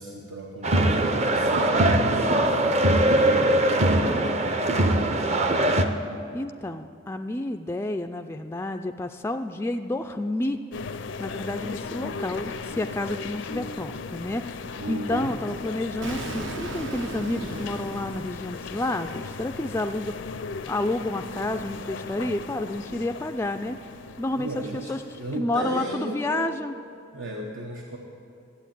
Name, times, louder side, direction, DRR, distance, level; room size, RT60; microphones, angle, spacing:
voice 1, 0.0-5.2 14.7-15.3 24.4-26.5 27.1-28.0, right 1 dB, 85° right, -1 dB, 1.2 m, -35 dB
sound 1, 0.6-5.9, right 1 dB, 35° right, 0.6 m, -21 dB
voice 2, 6.3-10.6 11.2-20.4 20.7-23.8 24.2-26.7, left 1 dB, 15° left, 6 dB, 0.3 m, -30 dB
sound 2, 10.7-25.4, left 4 dB, 65° left, 0.5 m, -37 dB
Explosion, 16.0-18.9, right 3 dB, 70° right, 0.8 m, -37 dB
12.5 x 8.3 x 9.1 m, 2.4 s
head